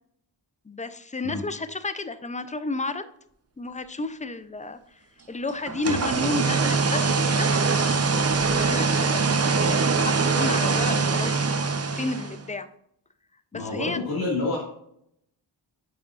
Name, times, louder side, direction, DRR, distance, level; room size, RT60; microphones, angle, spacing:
voice 1, 0.7-3.1 3.6-4.8 5.3-7.5 8.5-9.2 9.6-11.5 11.9-12.7 13.5-14.0, left 3 dB, 15° left, 11 dB, 0.4 m, -32 dB
sound 1, 5.7-12.4, right 4 dB, 35° right, 0.5 m, -23 dB
voice 2, 13.5-14.6, left 2 dB, 50° left, -5 dB, 1.9 m, -28 dB
10.0 x 4.7 x 2.4 m, 0.74 s
wide cardioid pair, 95°, 47 cm